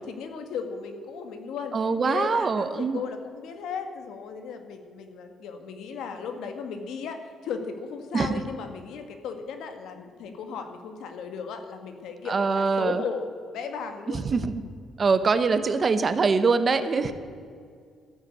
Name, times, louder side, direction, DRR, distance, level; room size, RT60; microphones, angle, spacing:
voice 1, 0.0-1.7 2.1-14.3 17.0-17.1, left 5 dB, 85° left, 7 dB, 1.7 m, -36 dB
voice 2, 1.7-3.0 8.1-8.4 12.3-13.0 14.1-14.6 15.0-17.1, right 4 dB, 30° right, 11 dB, 0.9 m, -23 dB
13.5 x 10.5 x 8.2 m, 2.1 s
cardioid pair, 155°, 0 cm